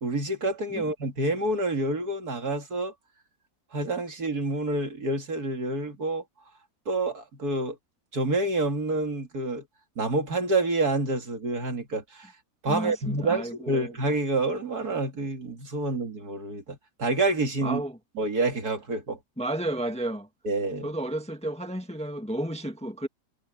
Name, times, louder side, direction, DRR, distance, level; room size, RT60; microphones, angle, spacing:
voice 1, 0.0-2.9 3.7-6.2 6.9-7.8 8.1-9.6 10.0-12.3 12.6-17.8 18.2-19.2 20.4-20.9, right 2 dB, 60° right, 3.0 m, -28 dB
voice 2, 12.7-13.9 17.6-18.0 19.4-20.3 20.8-23.1, right 1 dB, 5° left, 1.4 m, -32 dB
omnidirectional pair, 1.8 m